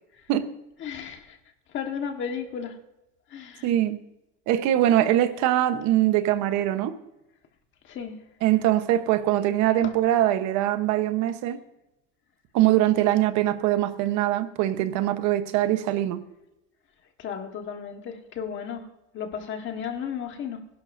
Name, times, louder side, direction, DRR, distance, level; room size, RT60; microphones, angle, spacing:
voice 1, 0.8-1.4 1.7-2.8 3.3-3.7 7.8-8.2 9.8-9.9 17.2-18.9 19.1-20.7, left 7 dB, 35° left, 1.5 m, -34 dB
voice 2, 3.6-4.0 4.5-6.9 8.4-11.6 12.5-16.2, right 13 dB, 50° right, 1.1 m, -22 dB
21.5 x 11.5 x 2.6 m
cardioid pair, 175°, 36 cm